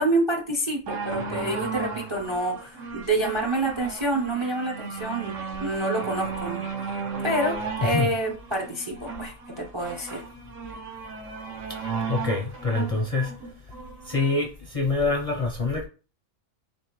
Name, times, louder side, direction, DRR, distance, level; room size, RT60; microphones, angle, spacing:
voice 1, 0.0-10.2, right 2 dB, 35° right, 0.4 m, -28 dB
sound 1, 0.9-14.4 15.2-15.3, right 4 dB, 80° right, 1.2 m, -35 dB
voice 2, 7.8-8.1 11.8-13.3 14.0-15.9, left 3 dB, 45° left, 0.5 m, -26 dB
3.8 x 3.3 x 2.9 m
omnidirectional pair, 1.3 m